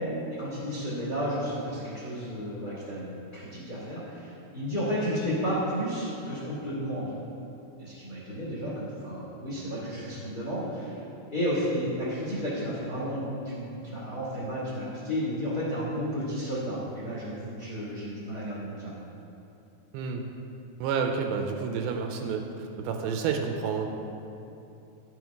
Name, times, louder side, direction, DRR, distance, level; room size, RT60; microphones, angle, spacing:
voice 1, 0.4-7.1 7.8-11.0 11.3-19.0, equal, 45° left, -9 dB, 1.2 m, -32 dB
voice 2, 20.8-22.4 22.8-23.9, right 6 dB, 85° right, 3 dB, 2.4 m, -29 dB
11.5 x 6.1 x 3.5 m, 2.8 s
omnidirectional pair, 4.5 m